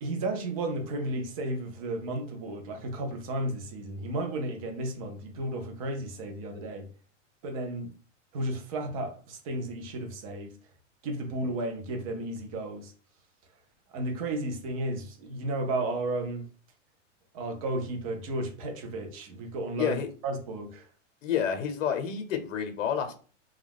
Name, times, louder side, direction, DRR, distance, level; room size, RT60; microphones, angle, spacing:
voice 1, 0.0-6.9 7.4-7.9 8.3-10.5 11.0-12.9 13.9-16.5 17.3-20.0 20.2-20.9, right 2 dB, 30° right, 0.4 m, -33 dB
voice 2, 19.8-20.1 21.2-23.1, left 8 dB, 85° left, 0.7 m, -29 dB
2.3 x 2.2 x 3.3 m
supercardioid pair, 155°, 38 cm